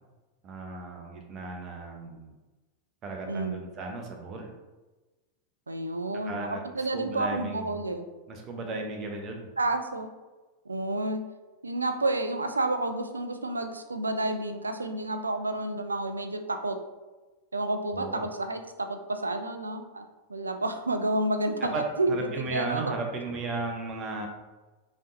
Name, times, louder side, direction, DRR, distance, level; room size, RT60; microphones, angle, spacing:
voice 1, 0.4-2.3 3.0-4.5 6.3-6.7 6.9-7.7 8.3-9.5 17.9-18.2 21.7-21.8 22.1-24.3, right 3 dB, 30° right, 2 dB, 0.8 m, -35 dB
voice 2, 3.3-3.7 5.7-8.1 9.6-10.1 10.7-11.3 11.6-16.8 17.5-20.0 20.3-22.9, right 2 dB, 80° right, 7 dB, 0.4 m, -30 dB
5.4 x 3.2 x 2.6 m, 1.2 s
figure-of-eight pair, 90°, 0 cm